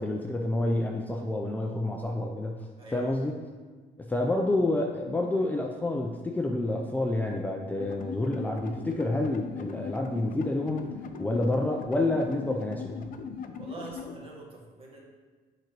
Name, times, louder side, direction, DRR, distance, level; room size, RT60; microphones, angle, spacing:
voice 1, 0.0-2.6 2.9-3.4 4.1-10.8 11.2-13.1, left 2 dB, 10° left, 0 dB, 0.5 m, -28 dB
voice 2, 2.8-3.1 13.6-15.0, right 3 dB, 35° right, -3 dB, 1.8 m, -44 dB
sound 1, 7.8-14.1, left 6 dB, 55° left, 0.6 m, -40 dB
7.7 x 5.2 x 3.0 m, 1.4 s
cardioid pair, 110°, 17 cm